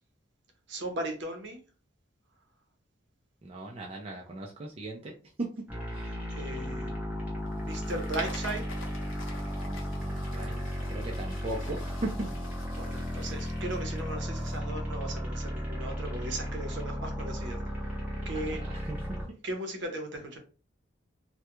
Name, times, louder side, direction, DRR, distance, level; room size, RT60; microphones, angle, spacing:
voice 1, 0.7-1.6 6.3-8.7 12.7-17.9 18.3-18.6 19.4-20.4, right 1 dB, 65° right, 4 dB, 0.7 m, -37 dB
voice 2, 3.4-5.1 5.6-6.2 9.6-10.6 10.9-12.1 18.3-19.2, right 2 dB, 30° right, -1 dB, 0.4 m, -39 dB
sound 1, 5.7-19.2, equal, 10° right, 0.8 m, -35 dB
sound 2, 7.4-14.6, left 3 dB, 85° left, 0.6 m, -47 dB
2.3 x 2.1 x 2.9 m, 0.37 s
head